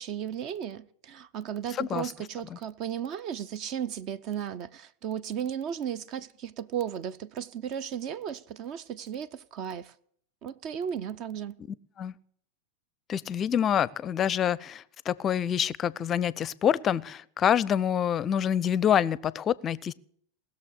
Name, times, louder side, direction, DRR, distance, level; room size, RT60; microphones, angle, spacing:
voice 1, 0.0-9.9 10.4-11.5, right 9 dB, 40° right, 0.7 m, -35 dB
voice 2, 1.8-2.1 2.5-2.6 12.0-12.1 13.1-19.9, left 9 dB, 25° left, 0.5 m, -26 dB
19.5 x 6.9 x 9.7 m
figure-of-eight pair, 90°, 0 cm